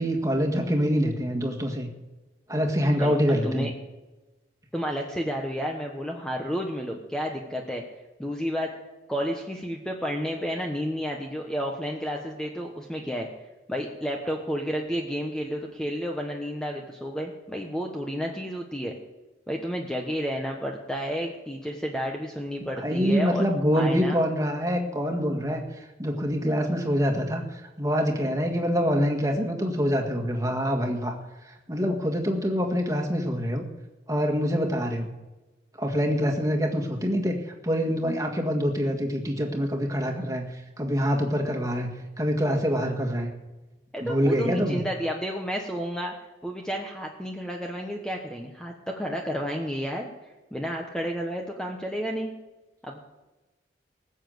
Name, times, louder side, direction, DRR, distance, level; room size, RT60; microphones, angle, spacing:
voice 1, 0.0-1.9 2.5-3.7 22.8-25.6 26.0-31.2 31.4-33.7 34.1-35.1 35.8-37.4 37.6-43.3 44.0-44.8, equal, 20° right, 3 dB, 1.9 m, -25 dB
voice 2, 4.7-7.8 8.2-8.7 9.1-13.3 13.7-18.9 19.5-23.4 23.7-24.2 43.9-46.1 46.4-50.1 50.5-52.3 52.8-53.0, equal, 5° left, 1 dB, 1.1 m, -31 dB
19.5 x 7.3 x 7.9 m, 1.1 s
head